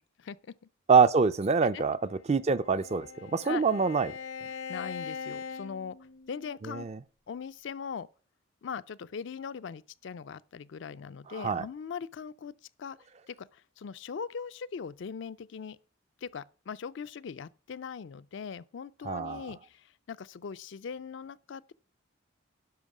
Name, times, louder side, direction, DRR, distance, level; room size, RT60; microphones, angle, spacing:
voice 1, 0.2-0.6 1.7-1.8 3.4-3.6 4.5-6.0 6.3-6.9 7.3-8.1 8.6-12.5 12.8-13.0 13.3-15.8 16.2-21.7, left 6 dB, 60° left, 0.4 m, -40 dB
voice 2, 0.9-2.0 2.3-4.1 6.6-7.0 11.3-11.7 19.0-19.5, right 5 dB, 30° right, 0.4 m, -25 dB
Bowed string instrument, 2.1-6.6, left 6 dB, 80° left, 0.9 m, -42 dB
10.5 x 5.8 x 4.8 m
head